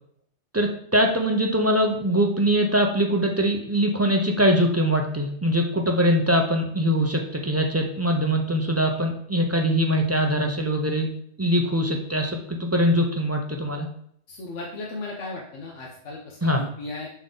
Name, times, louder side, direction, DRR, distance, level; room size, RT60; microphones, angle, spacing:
voice 1, 0.5-11.1 11.4-13.9 16.4-16.6, equal, 25° right, 2 dB, 0.3 m, -22 dB
voice 2, 14.3-17.1, left 2 dB, 85° left, -2 dB, 1.3 m, -36 dB
6.9 x 3.7 x 3.8 m, 0.66 s
omnidirectional pair, 1.2 m